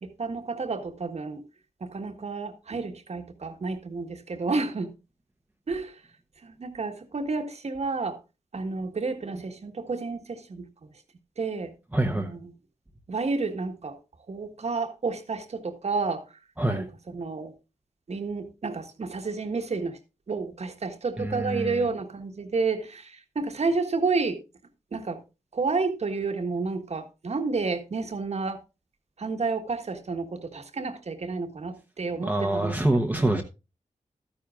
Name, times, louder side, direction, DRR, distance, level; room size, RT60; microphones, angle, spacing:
voice 1, 0.0-1.4 1.8-4.9 5.7-5.9 6.4-8.2 8.5-10.6 11.4-11.7 12.0-12.5 13.1-14.0 14.3-16.2 16.7-17.5 18.1-20.0 20.3-24.4 24.9-25.2 25.5-28.6 29.2-32.7 33.1-33.4, right 4 dB, 55° right, 1.5 m, -30 dB
voice 2, 11.9-12.3 16.6-16.9 21.2-21.9 32.1-33.4, right 1 dB, 10° right, 1.0 m, -26 dB
12.5 x 10.0 x 2.4 m
wide cardioid pair, 85°, 14 cm